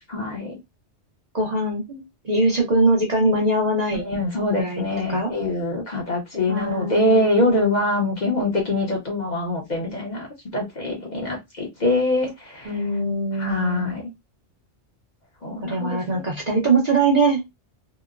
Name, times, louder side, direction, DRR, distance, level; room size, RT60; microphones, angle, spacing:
voice 1, 0.1-0.6 4.0-10.3 10.5-12.7 13.4-14.0 15.4-16.0, left 1 dB, 45° left, 0.8 m, -24 dB
voice 2, 1.3-4.1 4.6-5.3 6.5-7.8 12.6-13.9 15.6-17.4, right 2 dB, 40° right, 0.7 m, -22 dB
2.9 x 2.1 x 2.3 m
omnidirectional pair, 1.2 m